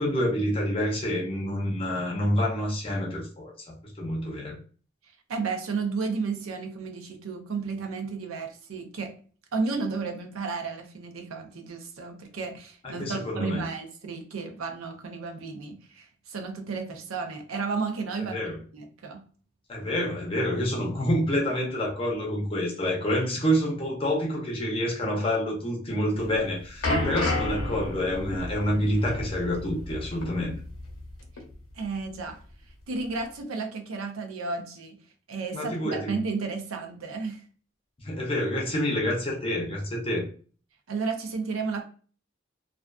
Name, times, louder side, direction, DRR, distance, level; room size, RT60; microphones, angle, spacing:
voice 1, 0.0-4.6 12.8-13.7 18.3-18.6 19.7-30.5 35.5-36.1 38.0-40.3, equal, 25° left, -2 dB, 0.5 m, -28 dB
voice 2, 5.3-9.1 9.5-18.4 18.7-19.2 31.8-32.4 32.9-35.0 35.3-37.4 40.9-41.8, right 4 dB, 90° right, 4 dB, 0.5 m, -32 dB
sound 1, 26.2-31.1 31.4-31.5 32.3-32.4, left 1 dB, 90° left, 0.7 m, -31 dB
2.4 x 2.3 x 2.3 m, 0.41 s
head